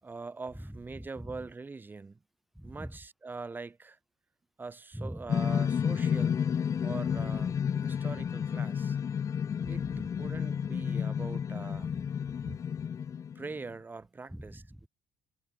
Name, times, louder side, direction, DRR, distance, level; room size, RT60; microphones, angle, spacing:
voice 1, 0.0-2.2 2.6-4.0 4.6-6.4 6.8-9.0 9.7-9.9 10.2-11.9 13.3-14.9, right 4 dB, 20° right, 2.7 m, -43 dB
voice 2, 0.6-1.5 2.6-3.0 4.9-5.3 7.1-7.4 9.6-10.3 11.8-12.6 14.3-14.9, equal, ahead, 5.4 m, -44 dB
sound 1, 5.3-13.7, left 7 dB, 35° left, 0.5 m, -31 dB
cardioid pair, 100°, 9 cm